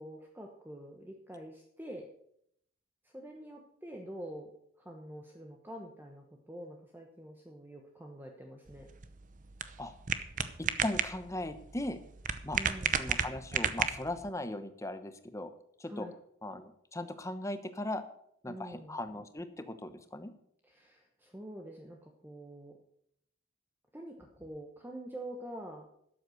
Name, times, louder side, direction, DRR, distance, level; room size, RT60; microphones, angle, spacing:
voice 1, 0.0-2.1 3.0-4.5 4.8-8.9 12.5-13.0 15.9-16.1 18.5-19.0 20.6-22.8 23.9-25.9, right 1 dB, 10° right, 1 dB, 1.0 m, -46 dB
sound 1, 8.7-14.3, right 7 dB, 40° right, 0.7 m, -34 dB
voice 2, 10.6-12.0 12.4-12.6 13.0-15.5 15.8-16.1 16.4-18.0 18.4-20.3, left 1 dB, 15° left, 10 dB, 0.9 m, -38 dB
12.5 x 7.9 x 6.4 m, 0.72 s
head